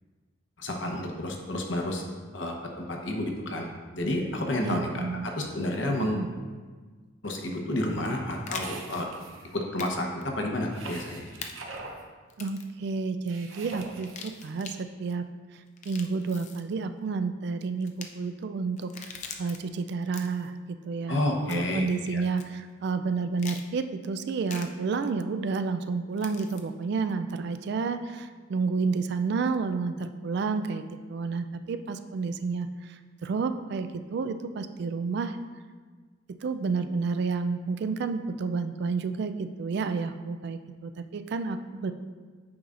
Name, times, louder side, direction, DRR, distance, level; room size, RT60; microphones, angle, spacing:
voice 1, 0.6-2.0 2.3-3.7 3.9-6.3 7.2-9.1 9.5-11.3 21.1-21.8 22.1-22.2, left 1 dB, 60° left, 1 dB, 0.9 m, -30 dB
voice 2, 4.6-5.3 6.0-6.3 12.4-15.3 15.8-18.9 19.4-21.2 21.5-30.8 31.1-35.4 36.3-41.9, right 4 dB, 55° right, 9 dB, 0.3 m, -30 dB
sound 1, 7.9-8.7 9.8-10.0 10.2-10.3 11.4-11.5 12.3-12.7 13.9-14.8 15.7-16.6 17.8-18.1 18.8-19.6 20.0-20.5 21.5-21.8 22.4-22.5 23.4-23.6 24.5-24.7 26.2-26.6, left 5 dB, 35° left, 0.4 m, -42 dB
sound 2, 8.6-9.5 10.7-12.0 13.3-14.3, right 3 dB, 75° right, 0.7 m, -42 dB
8.7 x 5.5 x 2.5 m, 1.5 s
head